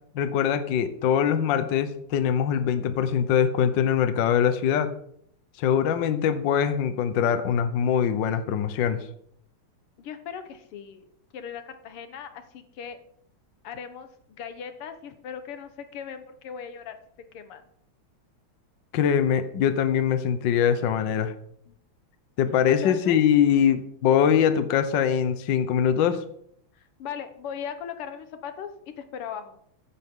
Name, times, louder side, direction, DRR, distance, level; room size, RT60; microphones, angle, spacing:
voice 1, 0.1-4.9 5.6-9.1 18.9-21.3 22.4-26.2, left 8 dB, 65° left, 10 dB, 1.5 m, -23 dB
voice 2, 10.0-11.1 11.3-13.0 13.6-17.6 21.7-21.8 22.7-23.2 26.7-29.6, left 7 dB, 85° left, 9 dB, 2.0 m, -38 dB
14.0 x 10.0 x 3.7 m, 0.69 s
omnidirectional pair, 2.4 m